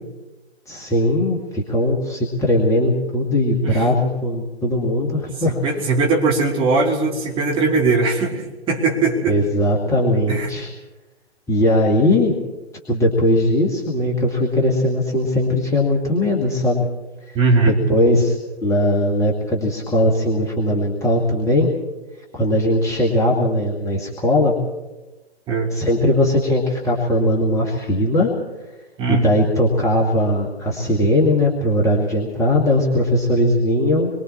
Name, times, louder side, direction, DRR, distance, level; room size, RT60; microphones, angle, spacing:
voice 1, 0.7-5.6 9.3-10.7 11.5-12.4 12.9-16.9 17.3-17.4 17.6-18.4 18.6-21.7 22.3-24.5 25.7-28.3 29.1-34.1, left 1 dB, 10° left, -2 dB, 2.1 m, -19 dB
voice 2, 5.5-9.4 10.3-10.5 17.3-18.0 25.5-25.7 29.0-29.4, right 3 dB, 15° right, -2 dB, 3.0 m, -20 dB
27.5 x 23.0 x 4.4 m, 1.1 s
figure-of-eight pair, 130°, 33 cm